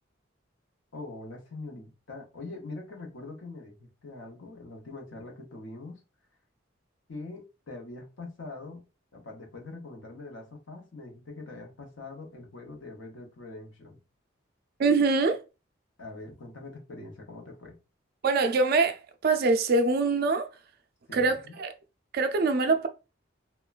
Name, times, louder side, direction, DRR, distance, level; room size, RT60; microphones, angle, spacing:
voice 1, 0.9-6.0 7.1-8.8 9.1-14.0 16.0-17.8 21.1-21.6, left 2 dB, 75° left, 0.7 m, -43 dB
voice 2, 14.8-15.4 18.2-20.5 21.1-21.7 22.1-22.9, right 3 dB, 50° right, 0.4 m, -24 dB
3.0 x 2.2 x 2.3 m
head